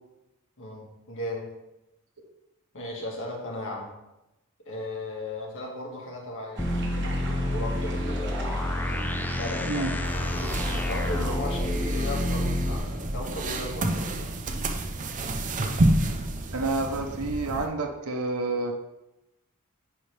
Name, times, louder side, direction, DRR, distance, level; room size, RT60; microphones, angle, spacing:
voice 1, 0.6-1.5 2.7-3.9 4.7-8.2 8.9-14.3, left 1 dB, 60° left, -1 dB, 1.8 m, -37 dB
sound 1, 6.6-12.8, left 1 dB, 10° left, 0.3 m, -29 dB
sound 2, 6.6-11.4, right 2 dB, 55° right, 1.3 m, -38 dB
sound 3, 10.0-17.7, right 1 dB, 35° right, 0.6 m, -29 dB
voice 2, 16.5-18.7, right 3 dB, 80° right, 2 dB, 0.9 m, -29 dB
10.5 x 4.4 x 3.4 m, 0.94 s
head